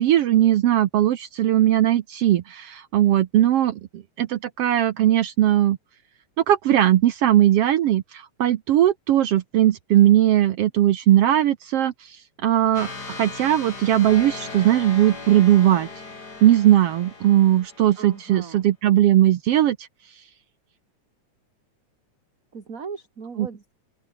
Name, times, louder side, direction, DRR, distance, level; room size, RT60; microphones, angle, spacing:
voice 1, 0.0-5.8 6.5-15.9 16.4-19.9 23.4-23.5, right 12 dB, 65° right, 1.6 m, -19 dB
sound 1, 12.7-18.3, left 3 dB, 30° left, 4.4 m, -38 dB
voice 2, 18.0-18.7 22.5-23.7, right 5 dB, 30° right, 2.2 m, -38 dB
open air
omnidirectional pair, 3.5 m